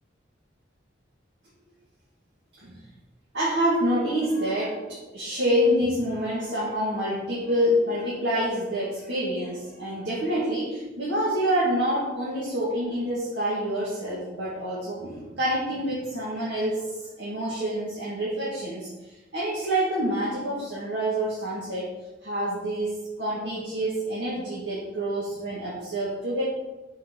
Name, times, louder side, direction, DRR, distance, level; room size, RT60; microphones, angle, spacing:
voice 1, 3.3-22.0 22.2-22.9 23.2-26.4, equal, 70° right, -7 dB, 2.0 m, -27 dB
6.2 x 4.6 x 6.1 m, 1.1 s
head